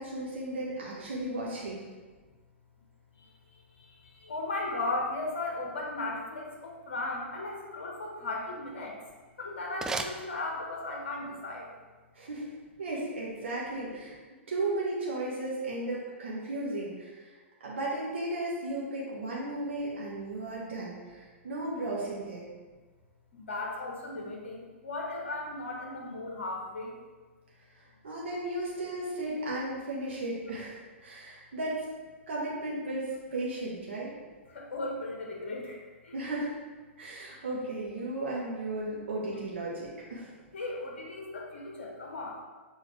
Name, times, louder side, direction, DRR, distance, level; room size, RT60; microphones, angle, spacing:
voice 1, 0.0-1.8 12.1-14.2 14.5-17.3 17.6-22.5 28.0-31.8 32.3-34.1 36.1-36.5 37.0-40.3, right 2 dB, 65° right, -5 dB, 1.5 m, -35 dB
voice 2, 4.2-8.9 9.4-11.6 23.3-26.9 34.7-35.8 36.0-36.2 40.5-42.4, left 2 dB, 65° left, -1 dB, 1.5 m, -36 dB
sound 1, 8.9-11.0, right 3 dB, 10° right, 0.3 m, -39 dB
6.6 x 4.3 x 3.4 m, 1.3 s
figure-of-eight pair, 110°, 7 cm